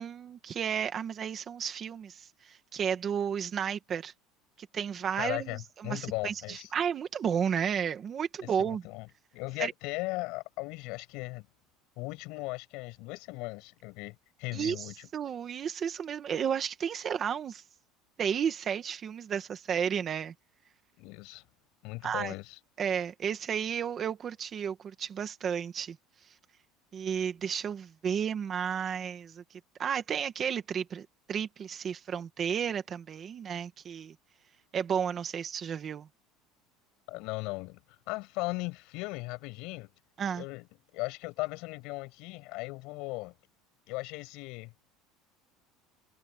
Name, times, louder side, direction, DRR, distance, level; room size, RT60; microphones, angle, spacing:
voice 1, 0.0-4.1 4.7-8.8 9.6-9.7 14.5-17.6 18.2-20.3 22.0-22.3 22.8-26.0 26.9-29.4 29.8-34.1 34.7-36.1 40.2-40.4, right 8 dB, 25° right, 1.7 m, -32 dB
voice 2, 5.2-6.7 8.4-9.1 9.3-11.5 12.0-15.1 21.0-21.4 21.8-22.6 37.1-37.8 38.1-39.9 40.3-40.7 40.9-43.3 43.9-44.7, left 24 dB, 55° left, 6.0 m, -37 dB
cardioid pair, 175°, 0 cm